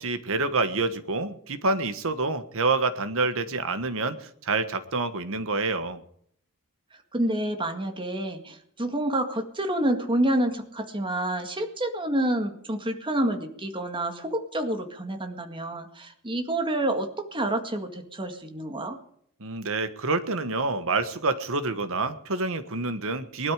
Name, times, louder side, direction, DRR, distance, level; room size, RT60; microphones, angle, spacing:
voice 1, 0.0-6.0 19.4-23.5, right 3 dB, 65° right, 11 dB, 1.4 m, -27 dB
voice 2, 7.1-19.0, right 1 dB, 25° right, 5 dB, 2.0 m, -28 dB
20.0 x 12.5 x 5.0 m, 0.69 s
head